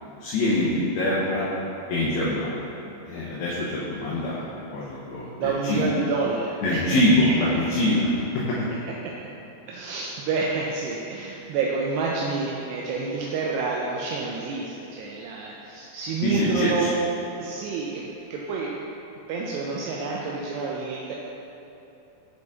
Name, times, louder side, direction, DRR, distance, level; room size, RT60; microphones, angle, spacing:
voice 1, 0.2-1.4 1.9-2.6 3.0-4.4 4.7-5.8 6.6-8.6 16.2-16.9, left 1 dB, 75° left, -7 dB, 2.7 m, -24 dB
voice 2, 5.4-6.8 7.5-7.6 9.0-9.1 9.7-17.0 17.4-18.0 18.3-18.7 19.3-21.1, right 4 dB, 80° right, -3 dB, 2.6 m, -28 dB
8.0 x 5.1 x 3.5 m, 3.0 s
omnidirectional pair, 5.0 m